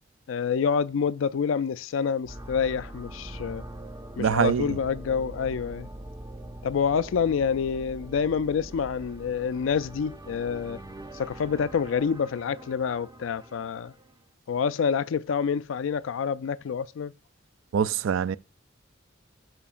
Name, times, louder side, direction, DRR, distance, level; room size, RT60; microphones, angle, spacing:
voice 1, 0.3-3.6 4.2-5.9 6.6-10.8 11.1-13.9 14.5-17.1, left 6 dB, 75° left, 0.4 m, -27 dB
sound 1, 2.2-14.2, right 1 dB, 20° right, 0.6 m, -43 dB
voice 2, 4.2-4.7 17.7-18.4, right 7 dB, 80° right, 0.4 m, -24 dB
12.5 x 5.1 x 2.5 m
head